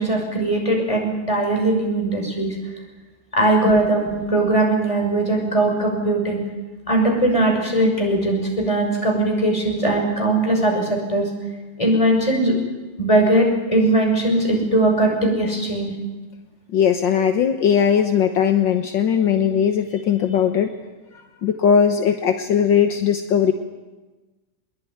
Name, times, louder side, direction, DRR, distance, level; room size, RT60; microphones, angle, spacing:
voice 1, 0.0-2.5 3.3-6.4 6.9-11.3 11.8-12.6 13.0-15.9, right 1 dB, 15° left, 2 dB, 6.0 m, -20 dB
voice 2, 16.7-20.7 21.1-23.5, left 8 dB, 70° left, 6 dB, 1.8 m, -19 dB
22.5 x 21.5 x 9.5 m, 1.2 s
omnidirectional pair, 2.1 m